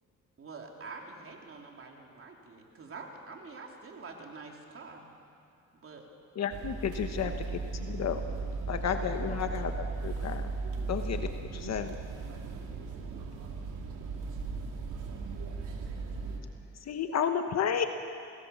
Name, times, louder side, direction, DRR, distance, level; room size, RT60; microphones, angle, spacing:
voice 1, 0.4-5.1 5.8-6.0, right 4 dB, 45° right, 1 dB, 3.5 m, -46 dB
voice 2, 6.3-8.2 8.7-9.7 10.0-10.5 10.9-12.0 16.8-17.9, left 8 dB, 60° left, 7 dB, 1.2 m, -32 dB
sound 1, 6.5-16.4, right 4 dB, 85° right, 2.8 m, -37 dB
voice 3, 14.9-17.0, left 2 dB, 30° left, 1 dB, 5.9 m, -53 dB
27.5 x 18.5 x 7.2 m, 2.5 s
cardioid pair, 90°, 30 cm